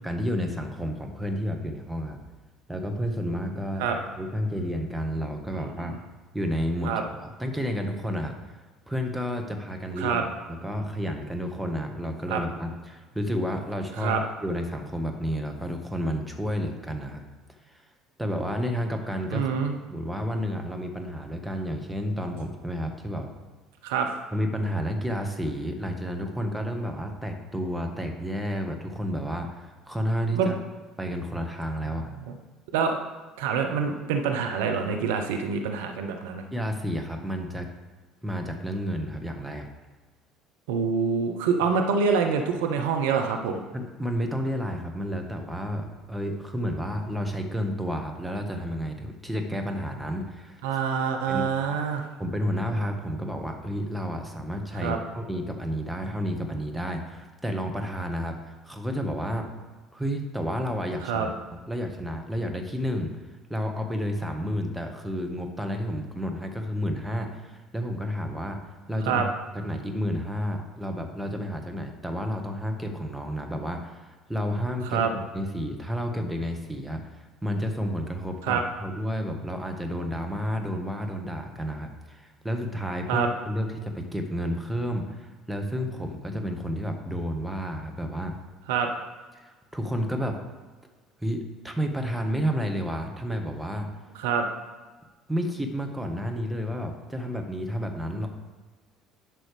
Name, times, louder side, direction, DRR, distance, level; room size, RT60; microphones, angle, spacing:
voice 1, 0.0-2.2 2.7-3.9 4.2-6.0 6.3-6.9 7.2-8.3 8.9-14.2 14.4-17.2 17.7-17.8 18.2-19.5 19.9-23.3 24.3-30.5 31.0-32.2 36.5-37.7 38.2-39.7 43.7-50.6 51.3-51.5 52.2-59.5 59.9-63.1 63.5-68.6 68.9-69.3 69.5-88.4 89.3-90.4 91.2-93.9 95.3-98.3, equal, 5° right, 3 dB, 1.4 m, -31 dB
voice 2, 19.3-19.7 23.8-24.1 30.3-30.6 32.3-32.4 32.7-33.0 33.4-36.4 40.7-43.6 50.6-52.1 54.8-55.0 61.0-61.3 69.0-69.3 74.9-75.1 78.4-78.6 83.1-83.3 88.7-88.9 94.2-94.5, right 6 dB, 70° right, 4 dB, 0.7 m, -26 dB
11.0 x 6.2 x 3.4 m, 1.3 s
figure-of-eight pair, 60°, 0 cm